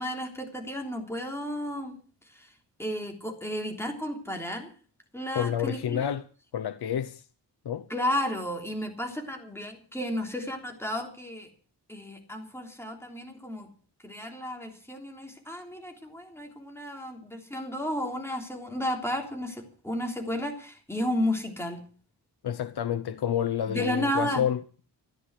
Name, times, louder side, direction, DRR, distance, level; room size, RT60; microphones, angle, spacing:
voice 1, 0.0-2.0 2.3-2.5 2.8-4.7 5.1-6.1 7.9-11.5 11.9-13.7 14.0-21.8 23.7-24.4, left 1 dB, 5° left, 3.3 m, -33 dB
voice 2, 5.3-6.3 6.5-7.3 7.6-7.9 22.4-24.6, left 9 dB, 70° left, 0.7 m, -29 dB
14.5 x 10.0 x 8.3 m
wide cardioid pair, 160°, 41 cm